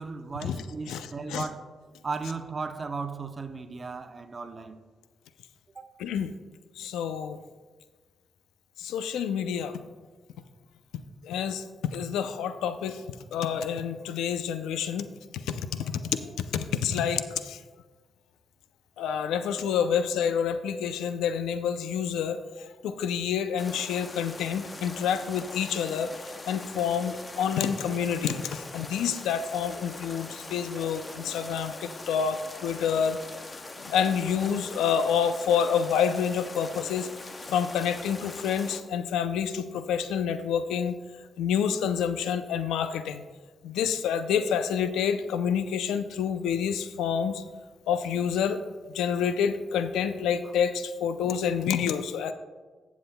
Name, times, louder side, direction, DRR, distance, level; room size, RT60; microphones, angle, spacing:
voice 1, 0.0-1.6 2.0-4.8 5.7-5.9 50.4-50.5, right 4 dB, 35° right, 0.7 m, -36 dB
voice 2, 0.9-1.4 6.0-6.3 6.8-7.4 8.8-9.8 11.2-11.6 11.9-13.0 13.3-15.1 15.5-15.7 16.5-17.6 19.0-22.4 22.8-26.1 26.5-33.2 33.9-37.1 37.5-41.0 41.4-43.2 43.6-47.4 47.9-48.6 48.9-52.3, left 7 dB, 90° left, 0.4 m, -28 dB
sound 1, 23.6-38.8, left 2 dB, 30° left, 0.8 m, -42 dB
15.0 x 7.2 x 2.2 m
cardioid pair, 70°, 0 cm